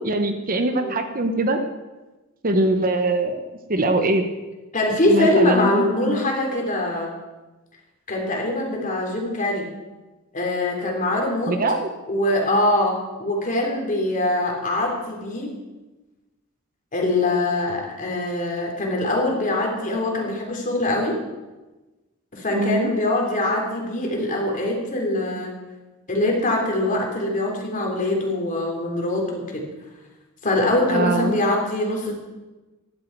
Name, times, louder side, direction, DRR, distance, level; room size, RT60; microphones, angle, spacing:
voice 1, 0.0-1.6 2.4-3.4 3.7-4.2 5.1-6.3 11.5-11.9 22.5-22.9 30.9-31.4, right 2 dB, 40° right, 7 dB, 1.1 m, -22 dB
voice 2, 0.7-1.1 4.7-7.1 8.1-9.7 10.3-11.5 12.1-15.6 16.9-21.2 22.3-25.5 26.1-29.6 30.4-32.1, left 1 dB, 40° left, 0 dB, 3.3 m, -23 dB
15.5 x 11.5 x 4.6 m, 1.1 s
head